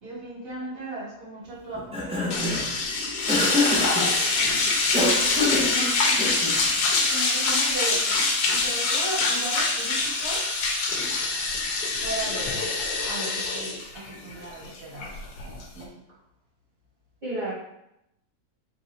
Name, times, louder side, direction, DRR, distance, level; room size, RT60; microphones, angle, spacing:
voice 1, 0.0-2.5 4.1-4.8 5.4-10.5 12.0-12.6 13.0-16.2, right 2 dB, 60° right, -6 dB, 1.8 m, -37 dB
Cough, 1.7-2.7 3.3-4.1 4.9-6.6, left 2 dB, 5° right, 0.7 m, -26 dB
sound 1, 2.3-15.8, left 3 dB, 90° left, 1.4 m, -25 dB
voice 2, 6.8-7.3 17.2-17.5, right 1 dB, 40° right, -6 dB, 0.8 m, -34 dB
3.9 x 2.6 x 4.1 m, 0.82 s
omnidirectional pair, 1.7 m